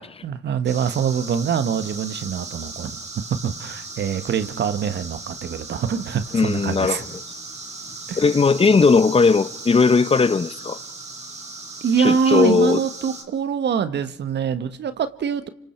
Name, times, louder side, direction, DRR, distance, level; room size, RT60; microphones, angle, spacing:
voice 1, 0.2-3.0 3.4-7.0 8.1-8.2 11.8-15.5, right 7 dB, 60° right, 1.6 m, -24 dB
sound 1, 0.6-13.2, right 3 dB, 35° right, 4.1 m, -37 dB
voice 2, 6.3-7.0 8.2-10.8 12.0-12.8, left 4 dB, 30° left, 1.0 m, -18 dB
28.5 x 25.5 x 4.6 m
cardioid pair, 90°, 20 cm